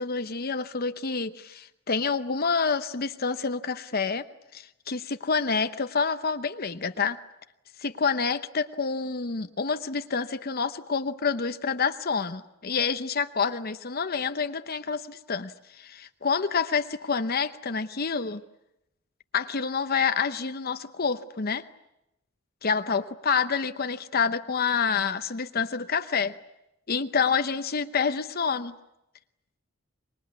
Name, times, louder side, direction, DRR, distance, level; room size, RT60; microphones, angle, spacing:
voice 1, 0.0-4.2 4.5-7.2 7.8-15.5 15.8-18.4 19.3-21.6 22.6-26.3 26.9-28.7, left 5 dB, 50° left, 10 dB, 0.9 m, -28 dB
25.5 x 21.5 x 9.6 m, 0.86 s
head